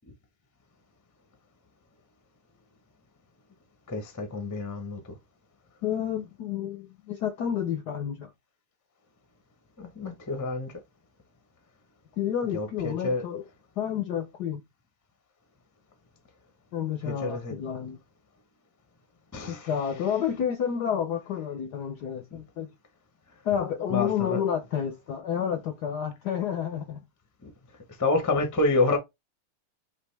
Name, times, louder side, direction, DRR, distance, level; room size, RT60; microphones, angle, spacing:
voice 1, 3.9-5.0 9.8-10.7 12.5-13.2 17.0-17.5 19.3-19.7 23.9-24.4 27.4-27.5 28.0-29.0, left 2 dB, 25° left, 0.3 m, -28 dB
voice 2, 5.8-8.3 12.2-13.4 13.8-14.6 16.7-18.0 19.5-22.7 23.4-27.0, left 9 dB, 70° left, 0.9 m, -30 dB
5.1 x 3.1 x 3.3 m
omnidirectional pair, 2.4 m